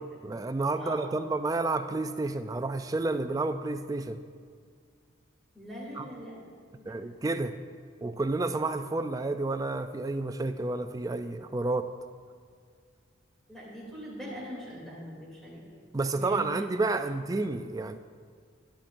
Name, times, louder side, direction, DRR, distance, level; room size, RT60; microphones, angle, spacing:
voice 1, 0.0-4.2 6.0-6.1 6.9-7.6 8.0-11.9 15.9-18.0, right 3 dB, 15° right, 9 dB, 0.3 m, -30 dB
voice 2, 0.7-1.1 5.5-6.4 6.7-6.9 13.5-15.6 16.1-16.4, equal, ahead, -6 dB, 2.7 m, -41 dB
12.5 x 11.0 x 2.6 m, 2.1 s
head